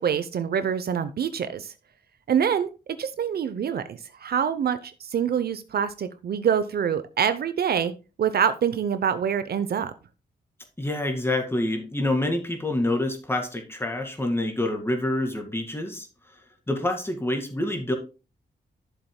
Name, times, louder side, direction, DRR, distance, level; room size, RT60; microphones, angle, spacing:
voice 1, 0.0-1.7 2.3-2.7 3.0-7.9 8.2-9.9, right 8 dB, 60° right, 0.7 m, -25 dB
voice 2, 10.8-16.1 16.7-17.9, left 1 dB, 15° left, 2.0 m, -27 dB
11.0 x 7.1 x 2.2 m
cardioid pair, 90°, 18 cm